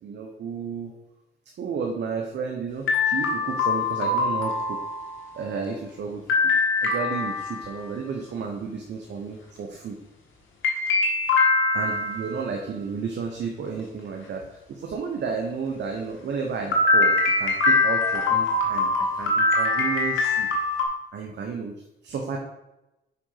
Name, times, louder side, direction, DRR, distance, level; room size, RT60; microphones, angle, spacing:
voice 1, 0.0-0.9 1.6-4.8 5.3-6.2 6.8-10.0 11.7-20.5 21.1-22.4, right 5 dB, 60° right, 2 dB, 1.0 m, -32 dB
sound 1, 2.9-5.3 6.3-7.9 10.6-12.3 16.7-20.8, left 3 dB, 80° left, 1.6 m, -23 dB
5.9 x 4.9 x 5.7 m, 0.95 s
cardioid pair, 90°, 20 cm